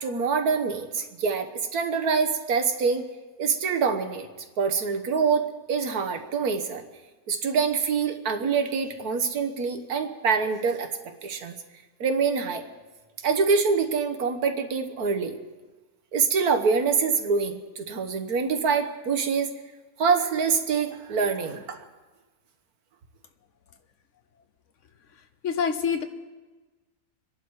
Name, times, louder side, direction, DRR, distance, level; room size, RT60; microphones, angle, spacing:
voice 1, 0.0-3.0 3.4-4.3 4.6-6.8 7.3-10.9 11.2-11.5 12.0-12.7 13.2-15.4 16.1-19.5 20.0-21.8, right 5 dB, 90° right, 6 dB, 1.7 m, -25 dB
voice 2, 25.2-26.0, left 6 dB, 60° left, 9 dB, 1.1 m, -27 dB
26.5 x 11.0 x 4.7 m, 1.3 s
omnidirectional pair, 1.5 m